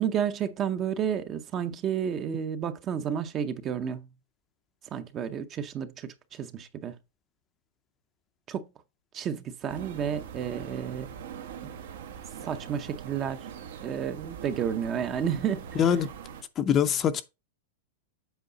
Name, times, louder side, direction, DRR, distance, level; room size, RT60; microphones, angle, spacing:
voice 1, 0.0-4.1 4.9-6.9 8.5-8.7 9.1-11.1 12.4-13.5 13.8-15.8, right 8 dB, 25° right, 0.6 m, -31 dB
sound 1, 9.7-16.4, right 8 dB, 75° right, 1.4 m, -42 dB
voice 2, 15.8-16.1 16.6-17.2, left 8 dB, 20° left, 0.5 m, -23 dB
8.1 x 4.7 x 3.9 m
supercardioid pair, 160°, 0 cm